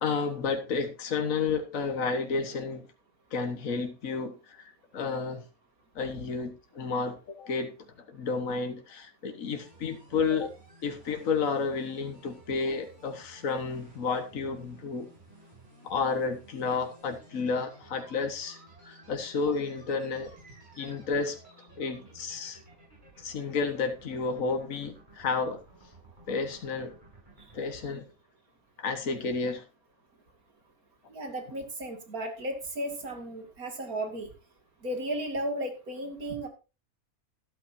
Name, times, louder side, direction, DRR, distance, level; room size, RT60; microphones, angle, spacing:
voice 1, 0.0-2.9 3.3-5.4 6.0-7.8 8.1-10.5 10.8-15.1 15.8-18.6 18.9-20.3 20.8-21.4 21.8-22.6 23.2-25.6 26.3-26.9 27.5-28.1 28.8-29.7, left 4 dB, 65° left, 5 dB, 1.7 m, -31 dB
sound 1, 9.6-27.6, right 1 dB, 35° right, 7.1 m, -55 dB
voice 2, 31.1-34.3 34.8-36.5, right 1 dB, 80° right, 5 dB, 2.8 m, -34 dB
13.0 x 13.0 x 2.7 m, 0.30 s
omnidirectional pair, 1.5 m